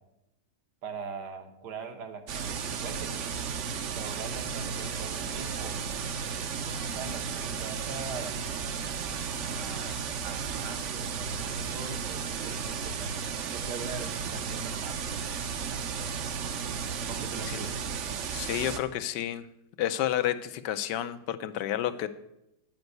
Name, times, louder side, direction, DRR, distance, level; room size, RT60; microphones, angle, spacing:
voice 1, 0.8-3.4 3.9-5.8 6.7-8.3 9.4-13.1 13.5-15.1 17.1-17.7, right 4 dB, 75° right, 6 dB, 1.7 m, -41 dB
sound 1, 2.3-18.8, right 6 dB, 60° right, 0.8 m, -34 dB
voice 2, 18.3-19.5 19.8-22.1, left 11 dB, 85° left, 11 dB, 1.3 m, -30 dB
9.2 x 5.2 x 7.8 m, 0.86 s
omnidirectional pair, 1.8 m